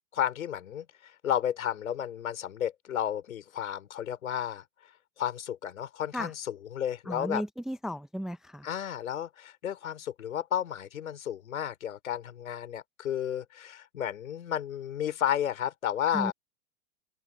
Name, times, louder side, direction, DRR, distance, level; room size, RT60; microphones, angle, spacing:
voice 1, 0.1-4.6 5.2-7.4 8.6-16.3, left 10 dB, 70° left, 5.2 m, -32 dB
voice 2, 7.1-8.7 16.1-16.3, equal, ahead, 0.7 m, -34 dB
open air
figure-of-eight pair, 100°, 43 cm